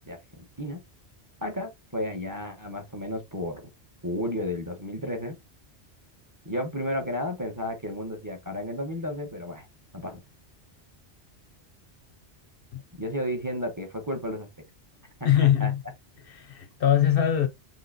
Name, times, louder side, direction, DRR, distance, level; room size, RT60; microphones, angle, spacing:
voice 1, 0.0-0.8 1.4-3.6 4.0-5.3 6.4-9.7 9.9-10.2 13.0-14.5 15.2-15.7, left 1 dB, 20° right, 1.0 m, -32 dB
voice 2, 15.2-15.8 16.2-17.5, left 10 dB, 60° left, 0.7 m, -22 dB
5.7 x 3.1 x 2.7 m
omnidirectional pair, 1.2 m